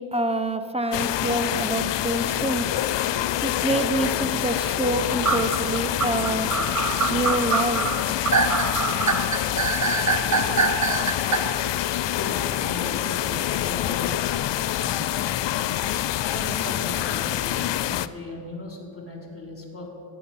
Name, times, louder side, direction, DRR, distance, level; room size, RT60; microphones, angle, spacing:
voice 1, 0.0-6.5 7.1-7.9, right 2 dB, 15° right, 9 dB, 1.0 m, -27 dB
sound 1, 0.9-18.1, left 12 dB, 65° left, 0.6 m, -26 dB
sound 2, 5.2-11.4, right 4 dB, 35° right, 1.3 m, -24 dB
voice 2, 12.1-14.2 14.8-15.2 16.3-19.9, left 1 dB, 30° left, -1 dB, 3.9 m, -37 dB
13.5 x 10.0 x 5.7 m, 2.3 s
cardioid pair, 50°, 47 cm